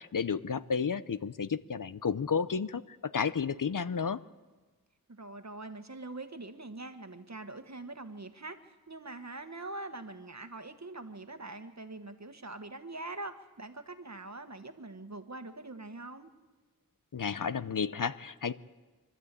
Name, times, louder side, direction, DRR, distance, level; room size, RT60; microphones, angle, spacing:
voice 1, 0.0-4.2 17.1-18.5, left 6 dB, 60° left, 15 dB, 0.6 m, -32 dB
voice 2, 5.1-16.3, right 2 dB, 50° right, 8 dB, 1.4 m, -43 dB
24.5 x 12.5 x 8.3 m, 1.3 s
wide cardioid pair, 45°, 36 cm